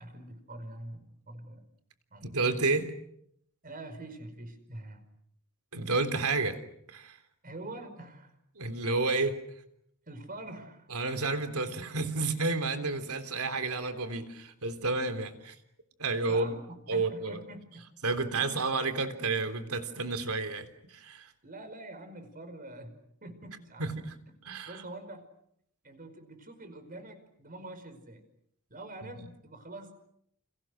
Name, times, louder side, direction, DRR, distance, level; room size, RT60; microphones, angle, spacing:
voice 1, 0.0-1.7 2.1-2.3 3.6-5.0 7.4-8.3 10.1-10.9 16.3-17.8 18.4-18.5 21.4-23.8 24.6-25.3 25.8-28.2 28.7-29.9, right 2 dB, 40° right, 9 dB, 5.2 m, -45 dB
voice 2, 2.2-2.9 5.7-6.6 6.9-7.2 8.5-9.4 10.9-15.5 16.0-16.5 16.9-17.4 18.0-21.3 23.8-24.1 24.4-24.8 29.2-29.3, right 3 dB, 80° right, 9 dB, 3.5 m, -31 dB
30.0 x 29.0 x 6.6 m, 0.72 s
head